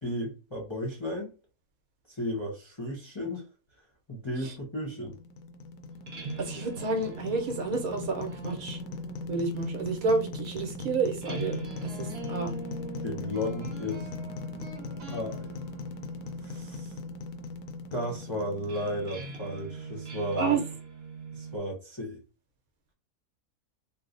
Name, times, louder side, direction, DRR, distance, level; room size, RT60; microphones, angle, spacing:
voice 1, 0.0-1.3 2.1-3.4 4.1-5.1 13.0-14.1 15.1-15.5 16.4-17.0 17.9-20.5 21.3-22.2, left 1 dB, 25° left, 0.7 m, -34 dB
sound 1, 4.9-20.1, left 3 dB, 85° left, 1.1 m, -39 dB
sound 2, 5.9-21.6, right 3 dB, 50° right, 1.0 m, -43 dB
voice 2, 6.4-8.8 9.3-11.6 11.8-12.5 20.3-20.6, right 4 dB, 70° right, 1.2 m, -30 dB
3.1 x 2.0 x 3.8 m
omnidirectional pair, 1.6 m